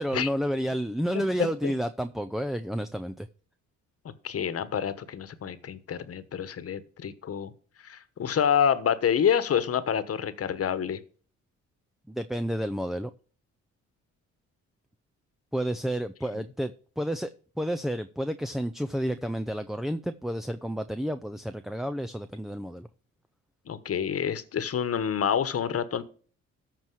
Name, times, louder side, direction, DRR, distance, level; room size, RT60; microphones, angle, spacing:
voice 1, 0.0-3.3 12.1-13.1 15.5-17.3 17.6-22.9, equal, ahead, 0.4 m, -30 dB
voice 2, 4.2-7.5 7.8-11.0 23.7-26.0, left 8 dB, 50° left, 1.2 m, -27 dB
13.5 x 4.6 x 6.3 m
cardioid pair, 90°, 30 cm